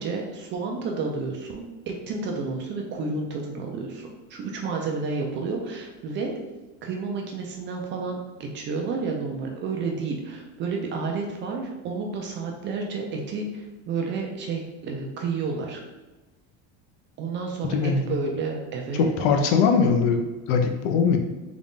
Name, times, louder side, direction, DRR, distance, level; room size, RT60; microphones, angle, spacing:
voice 1, 0.0-6.3 6.8-15.8 17.2-19.1, right 4 dB, 30° right, 1 dB, 0.4 m, -31 dB
voice 2, 17.7-18.0 19.2-20.2 20.5-21.2, left 5 dB, 70° left, 3 dB, 0.7 m, -21 dB
3.9 x 2.4 x 3.5 m, 1.2 s
cardioid pair, 160°, 40 cm